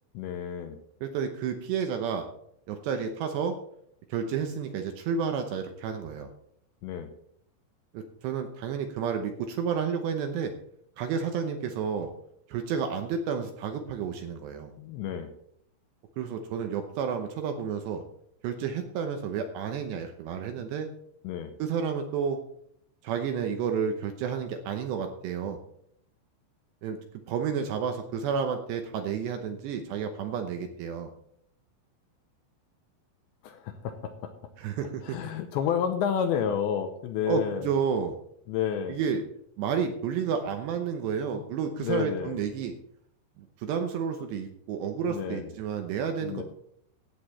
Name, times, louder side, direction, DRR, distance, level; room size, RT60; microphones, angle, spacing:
voice 1, 0.1-0.8 6.8-7.1 14.8-15.3 20.6-20.7 21.2-21.5 33.4-34.3 35.0-37.7 38.5-39.0 41.3-41.5 41.8-42.4 45.0-45.5 46.2-46.4, left 8 dB, 75° left, 7 dB, 2.8 m, -30 dB
voice 2, 1.0-2.3 2.7-3.6 4.1-6.3 7.9-10.5 11.0-12.1 12.5-14.7 16.2-18.0 18.4-20.9 21.6-22.4 23.0-25.6 26.8-27.0 27.3-31.1 34.6-35.2 37.3-38.1 38.9-39.2 39.6-42.7 43.4-46.4, right 7 dB, 75° right, 5 dB, 2.7 m, -31 dB
15.5 x 8.5 x 4.3 m, 0.69 s
omnidirectional pair, 5.8 m